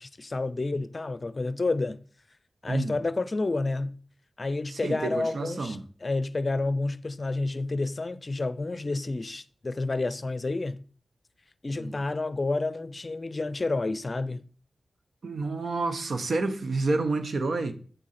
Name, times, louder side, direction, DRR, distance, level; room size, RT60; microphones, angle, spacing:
voice 1, 0.0-2.0 2.6-4.0 4.4-10.8 11.6-14.4, left 2 dB, 45° left, 0.5 m, -30 dB
voice 2, 4.7-5.8 11.7-12.0 15.2-17.7, right 3 dB, 75° right, 0.9 m, -29 dB
8.2 x 3.7 x 5.8 m
cardioid pair, 40°, 0 cm